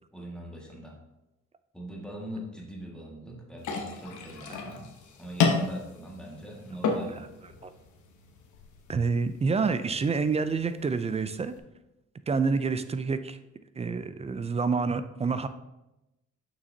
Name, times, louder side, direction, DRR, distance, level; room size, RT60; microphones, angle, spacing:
voice 1, 0.1-1.0 1.7-4.8 5.2-7.3, right 1 dB, 5° left, -3 dB, 1.7 m, -42 dB
sound 1, 3.6-11.6, left 5 dB, 75° left, 1.1 m, -33 dB
voice 2, 8.9-11.5 12.3-13.4 13.8-15.5, right 4 dB, 20° right, 12 dB, 0.3 m, -28 dB
6.7 x 5.9 x 2.7 m, 0.94 s
cardioid pair, 90°, 30 cm